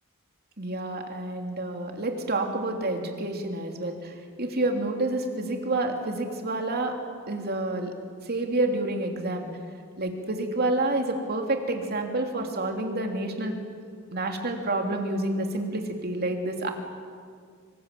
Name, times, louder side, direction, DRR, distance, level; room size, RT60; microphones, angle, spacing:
voice 1, 0.6-6.9 7.3-7.9 8.3-9.5 10.0-13.5 14.1-16.7, right 2 dB, 50° right, 3 dB, 3.1 m, -28 dB
25.5 x 25.0 x 7.8 m, 2.1 s
head